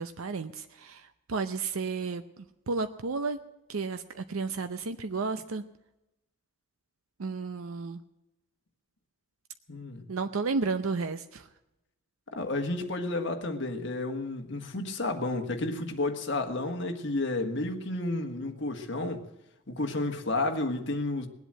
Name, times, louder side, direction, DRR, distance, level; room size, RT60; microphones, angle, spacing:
voice 1, 0.0-3.4 3.7-5.6 7.2-8.0 10.1-11.5, right 4 dB, 85° right, 0.7 m, -32 dB
voice 2, 9.7-10.0 12.3-19.2 19.7-21.3, left 2 dB, 60° left, 1.6 m, -31 dB
20.5 x 8.2 x 7.6 m
head